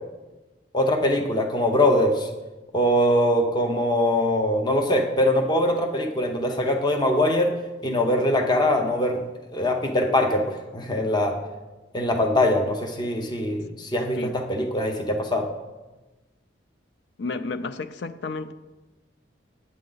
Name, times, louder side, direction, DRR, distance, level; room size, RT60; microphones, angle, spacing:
voice 1, 0.7-2.3 2.7-7.5 7.8-9.2 9.5-11.4 11.9-15.5, left 1 dB, 25° left, 0.7 m, -22 dB
voice 2, 17.2-18.5, left 3 dB, 65° left, 0.5 m, -31 dB
8.5 x 7.6 x 3.9 m
head